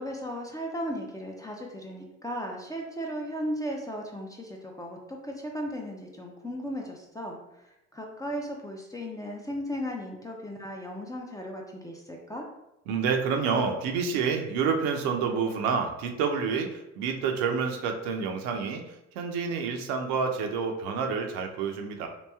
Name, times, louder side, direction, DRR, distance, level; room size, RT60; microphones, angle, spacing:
voice 1, 0.0-12.4, equal, 10° left, 0 dB, 0.4 m, -36 dB
voice 2, 12.9-22.1, right 5 dB, 65° right, 4 dB, 0.6 m, -28 dB
3.0 x 2.5 x 2.3 m, 0.89 s
hypercardioid pair, 60°, 39 cm